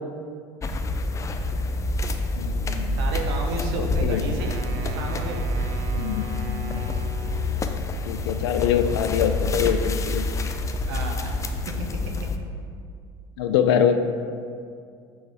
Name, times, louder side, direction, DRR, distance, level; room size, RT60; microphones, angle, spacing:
sound 1, 0.6-12.4, left 2 dB, 25° left, 0.5 m, -27 dB
voice 1, 2.4-3.0 3.7-4.2 6.0-6.8 8.0-10.3 13.4-14.0, left 8 dB, 85° left, 8 dB, 0.5 m, -24 dB
voice 2, 2.9-5.4 10.9-11.5, right 3 dB, 85° right, 2 dB, 0.9 m, -32 dB
Wind instrument woodwind instrument, 4.4-7.8, right 5 dB, 65° right, 0.5 m, -39 dB
6.4 x 5.5 x 3.5 m, 2.3 s
supercardioid pair, 100°, 13 cm